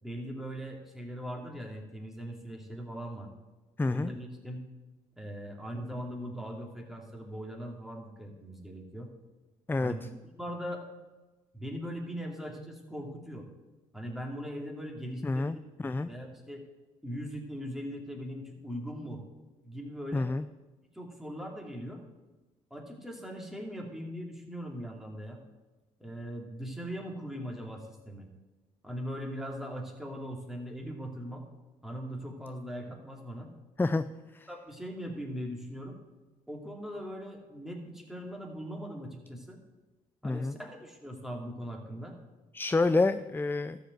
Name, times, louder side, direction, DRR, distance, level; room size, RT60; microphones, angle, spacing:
voice 1, 0.0-3.3 3.9-4.6 5.2-9.1 9.8-10.1 10.3-10.9 11.5-13.5 13.9-15.7 16.1-16.7 17.0-19.2 19.6-20.3 20.9-22.0 22.7-25.4 26.0-28.3 28.8-31.5 31.8-33.5 34.5-36.0 36.5-39.6 40.2-42.2, equal, ahead, 1 dB, 2.8 m, -40 dB
voice 2, 3.8-4.1 9.7-9.9 15.2-15.6 15.8-16.1 20.1-20.4 33.8-34.0 34.3-34.5 40.2-40.6 42.5-43.8, left 3 dB, 15° left, 12 dB, 0.4 m, -28 dB
12.5 x 5.1 x 7.9 m, 1.2 s
supercardioid pair, 60°, 16 cm